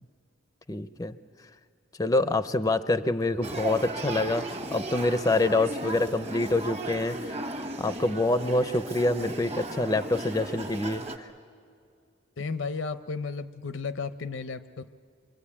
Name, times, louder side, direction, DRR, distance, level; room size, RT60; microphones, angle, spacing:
voice 1, 0.7-1.2 2.0-7.4 7.8-11.3, left 2 dB, 20° left, 12 dB, 0.6 m, -26 dB
Male speech man speaking / Child speech kid speaking / Conversation, 3.4-11.2, right 1 dB, 35° right, 1.5 m, -36 dB
voice 2, 12.4-14.9, left 4 dB, 75° left, 12 dB, 0.7 m, -34 dB
25.0 x 24.5 x 8.6 m, 2.4 s
head